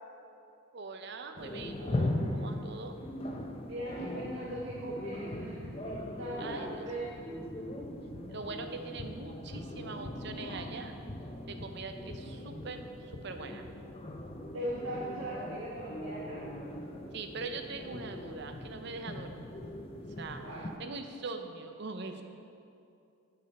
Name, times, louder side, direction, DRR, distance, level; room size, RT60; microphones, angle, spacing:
voice 1, 0.7-3.0 6.4-6.8 8.3-11.0 11.5-13.6 17.1-19.6 20.2-22.2, right 3 dB, 50° right, 6 dB, 0.6 m, -42 dB
sound 1, 1.4-20.8, left 1 dB, 25° left, 0.5 m, -40 dB
voice 2, 3.7-7.1 14.5-16.5 20.4-20.7, right 1 dB, 75° right, -7 dB, 1.2 m, -39 dB
10.5 x 5.4 x 4.2 m, 2.6 s
head